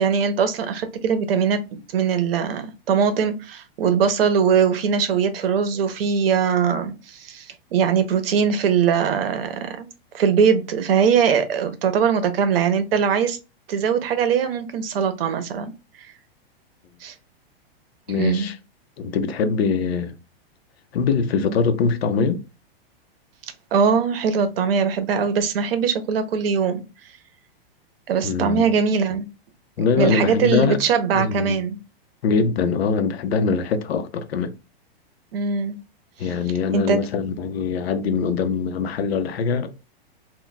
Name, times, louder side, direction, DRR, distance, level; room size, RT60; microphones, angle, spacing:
voice 1, 0.0-1.6 1.9-9.9 10.1-13.4 13.7-15.7 17.0-17.1 18.1-18.5 23.7-26.8 28.1-29.3 30.0-31.8 35.3-35.8 36.2-36.3 36.7-37.0, right 6 dB, 70° right, 0.7 m, -21 dB
voice 2, 18.1-18.5 19.0-20.1 20.9-22.4 28.2-28.7 29.8-30.8 31.1-31.6 32.2-34.5 36.2-39.7, left 5 dB, 85° left, 0.6 m, -22 dB
2.2 x 2.2 x 3.8 m
supercardioid pair, 155°, 30 cm